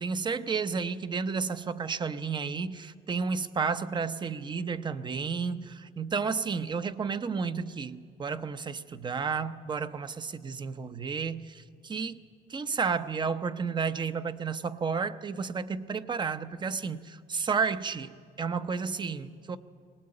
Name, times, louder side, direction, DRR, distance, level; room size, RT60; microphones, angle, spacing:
voice 1, 0.0-12.2 12.5-19.6, right 5 dB, 25° right, 12 dB, 0.7 m, -32 dB
20.0 x 19.0 x 8.7 m, 2.1 s
cardioid pair, 110°, 17 cm